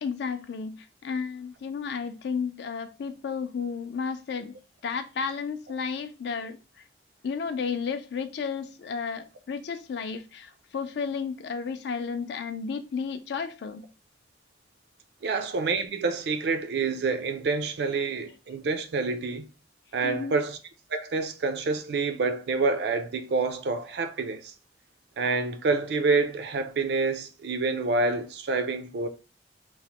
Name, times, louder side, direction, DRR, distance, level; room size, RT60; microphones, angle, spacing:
voice 1, 0.0-4.6 4.8-6.6 7.2-13.9 20.0-20.4, left 5 dB, 70° left, 0.3 m, -32 dB
voice 2, 15.2-19.5 19.9-20.6 20.9-24.5 25.2-29.1, right 4 dB, 65° right, 0.4 m, -27 dB
3.0 x 2.0 x 2.8 m
head